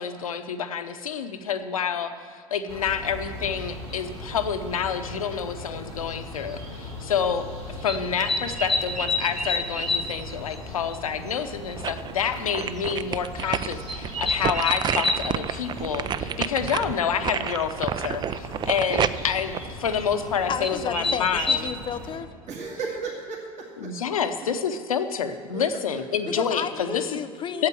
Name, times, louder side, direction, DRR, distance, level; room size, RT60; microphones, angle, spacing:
voice 1, 0.0-7.4 7.8-21.7 23.8-27.1 27.6-27.7, left 7 dB, 80° left, 9 dB, 0.7 m, -28 dB
sound 1, 2.7-22.2, left 1 dB, 80° right, 3.3 m, -39 dB
sound 2, 3.9-4.0 5.4-5.5 6.2-6.4 7.9-10.2 10.5-10.6 10.9-11.0 11.3-11.4 11.7-11.8 12.6-12.8 13.9-15.2 17.3-17.4 17.7-18.1 20.0-20.1 20.6-21.6, left 2 dB, ahead, 1.1 m, -27 dB
sound 3, 11.3-12.1 12.5-20.6 21.0-21.1, right 8 dB, 25° right, 0.4 m, -30 dB
voice 2, 16.2-16.6 22.5-23.9 25.5-25.8 27.5-27.6, right 4 dB, 40° right, -2 dB, 2.1 m, -36 dB
voice 3, 20.5-22.3 26.3-27.7, left 8 dB, 30° left, 11 dB, 0.6 m, -32 dB
8.6 x 8.0 x 9.1 m, 2.1 s
figure-of-eight pair, 70°, 18 cm